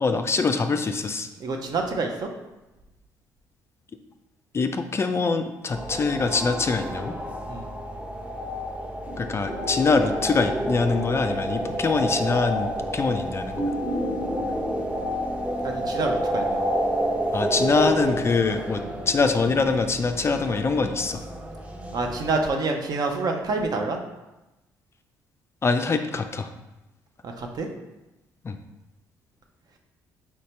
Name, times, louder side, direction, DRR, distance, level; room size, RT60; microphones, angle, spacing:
voice 1, 0.0-1.3 4.5-7.1 9.2-13.7 17.3-21.2 25.6-26.5 28.4-28.6, left 4 dB, 30° left, 7 dB, 0.3 m, -24 dB
voice 2, 1.4-2.3 7.5-7.7 15.6-16.6 21.9-24.0 27.2-27.7, right 3 dB, 50° right, 3 dB, 0.6 m, -27 dB
sound 1, 5.7-22.4, equal, 15° right, 0.7 m, -29 dB
4.4 x 2.7 x 3.2 m, 0.99 s
hypercardioid pair, 50°, 9 cm